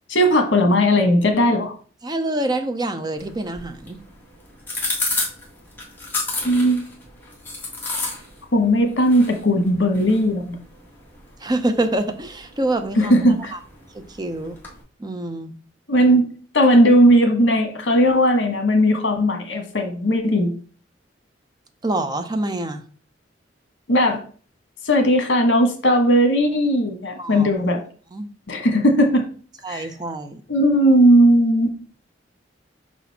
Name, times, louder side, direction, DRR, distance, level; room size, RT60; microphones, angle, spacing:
voice 1, 0.1-1.7 6.4-6.8 8.5-10.6 12.9-13.5 15.9-16.3 16.5-20.6 23.9-24.2 24.8-27.8 28.5-29.2 29.7-29.9 30.5-31.7, equal, 65° left, 5 dB, 1.4 m, -17 dB
voice 2, 2.0-4.0 11.4-13.1 13.5-13.6 13.9-14.6 15.0-15.5 21.8-22.8 27.2-27.5 28.1-28.3 29.6-30.4, right 2 dB, 20° right, 7 dB, 0.6 m, -26 dB
sound 1, 3.2-14.8, left 3 dB, 10° left, 1.7 m, -33 dB
6.0 x 4.3 x 4.1 m, 0.41 s
head